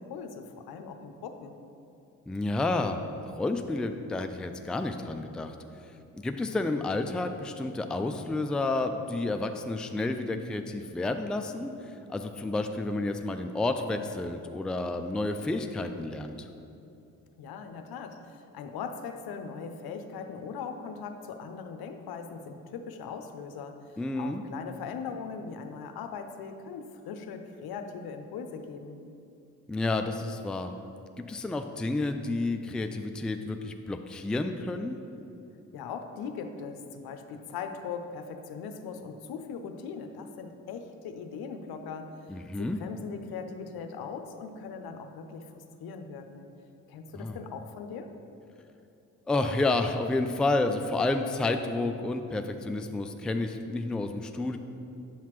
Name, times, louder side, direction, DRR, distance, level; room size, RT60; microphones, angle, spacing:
voice 1, 0.0-1.6 17.4-29.0 35.7-46.5 46.9-48.1, left 5 dB, 70° left, 7 dB, 0.6 m, -40 dB
voice 2, 2.3-3.0 3.3-5.6 6.1-11.7 12.1-16.5 24.0-24.4 29.7-30.7 31.2-35.0 42.3-42.8 47.1-47.4 49.3-54.6, left 2 dB, ahead, 6 dB, 0.4 m, -30 dB
8.2 x 5.7 x 3.1 m, 2.8 s
supercardioid pair, 50°, 39 cm